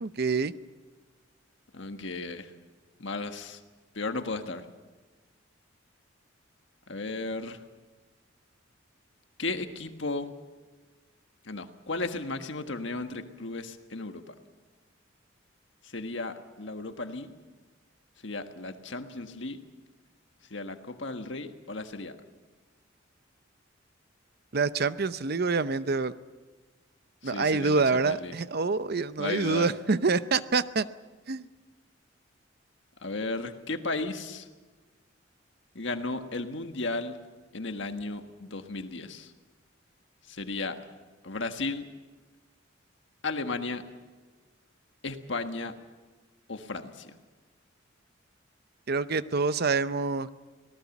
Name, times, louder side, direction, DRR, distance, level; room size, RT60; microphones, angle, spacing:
voice 1, 0.0-0.5 24.5-26.1 27.2-30.9 31.3-31.5 48.9-50.3, right 4 dB, 50° right, 14 dB, 0.7 m, -26 dB
voice 2, 1.7-2.5 3.0-3.6 3.9-4.6 6.9-7.6 9.4-10.3 11.4-14.3 15.8-17.3 18.2-19.6 20.5-22.2 27.2-28.3 29.2-29.7 33.0-34.5 35.7-37.2 37.5-39.3 40.3-40.8 41.2-41.8 43.2-43.8 45.0-45.7 46.5-47.1, left 3 dB, 65° left, 7 dB, 1.6 m, -34 dB
25.5 x 18.0 x 7.2 m, 1.3 s
head